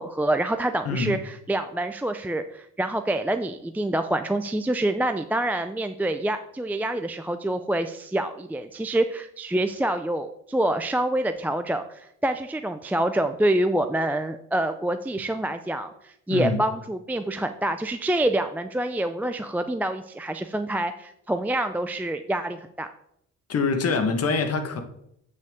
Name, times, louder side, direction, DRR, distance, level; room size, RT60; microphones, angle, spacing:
voice 1, 0.0-22.9, right 1 dB, 5° right, 0.4 m, -26 dB
voice 2, 0.8-1.2 16.3-16.6 23.5-24.8, left 4 dB, 55° left, 1.4 m, -24 dB
8.1 x 6.6 x 3.6 m
cardioid pair, 90°, 30 cm